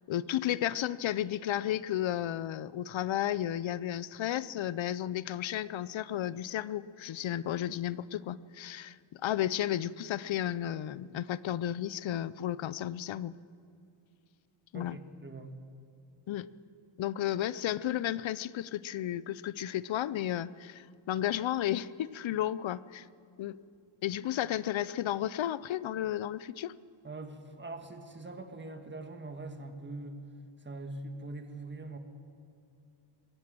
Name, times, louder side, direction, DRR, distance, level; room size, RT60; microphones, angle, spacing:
voice 1, 0.1-13.3 14.7-15.0 16.3-16.5 17.0-23.1 23.4-23.6 24.0-26.7, left 12 dB, 70° left, 18 dB, 0.6 m, -33 dB
voice 2, 14.7-15.5 27.0-30.2 30.6-32.0, right 2 dB, 20° right, 6 dB, 1.6 m, -43 dB
22.0 x 16.0 x 7.6 m, 2.5 s
wide cardioid pair, 150°, 49 cm